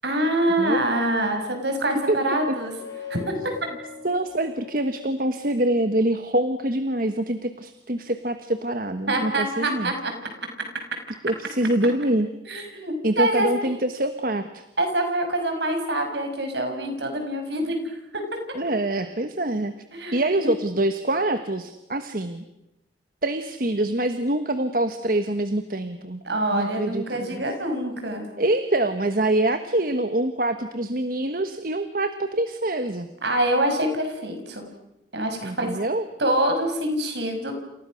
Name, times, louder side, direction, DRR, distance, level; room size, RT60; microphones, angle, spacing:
voice 1, 0.0-2.7 3.1-3.2 9.1-10.1 12.5-13.5 14.8-17.8 18.1-18.4 19.9-20.5 26.2-28.3 33.2-34.7 35.1-35.7 36.2-37.5, right 1 dB, 65° right, 5 dB, 6.1 m, -25 dB
voice 2, 2.1-2.6 4.0-9.9 11.2-12.3 13.0-14.6 18.5-19.7 20.1-22.4 23.2-26.2 26.5-27.4 28.4-33.1 35.4-36.0, right 1 dB, 50° right, 9 dB, 1.3 m, -25 dB
sound 1, 2.4-6.0, left 6 dB, 15° left, 7.7 m, -41 dB
29.5 x 28.5 x 6.4 m, 0.91 s
head